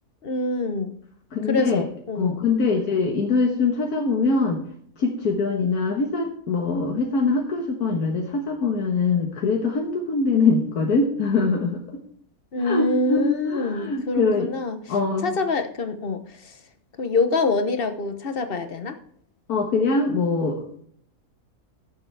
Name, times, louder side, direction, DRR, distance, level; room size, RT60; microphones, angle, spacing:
voice 1, 0.2-0.9 1.5-2.4 12.5-15.0 15.2-16.6 17.0-19.0, left 3 dB, 40° left, 8 dB, 1.2 m, -25 dB
voice 2, 1.3-1.8 2.2-4.6 5.0-11.8 12.6-14.5 14.9-15.4 19.5-20.6, left 4 dB, 90° left, 1 dB, 1.8 m, -23 dB
14.5 x 7.1 x 3.4 m, 0.64 s
omnidirectional pair, 1.6 m